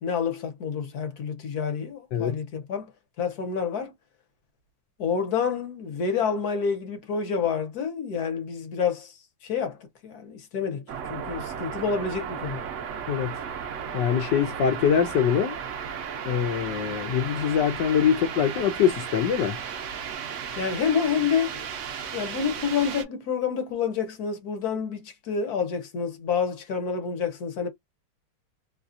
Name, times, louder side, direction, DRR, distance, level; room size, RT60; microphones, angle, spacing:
voice 1, 0.0-2.9 3.2-3.9 5.0-9.1 9.4-12.6 20.6-21.7 22.1-27.7, left 6 dB, 60° left, 1.4 m, -28 dB
sound 1, 10.9-23.0, right 7 dB, 65° right, 0.7 m, -35 dB
voice 2, 13.9-15.6 16.3-19.6, left 8 dB, 75° left, 1.2 m, -23 dB
3.2 x 2.3 x 2.5 m
omnidirectional pair, 2.0 m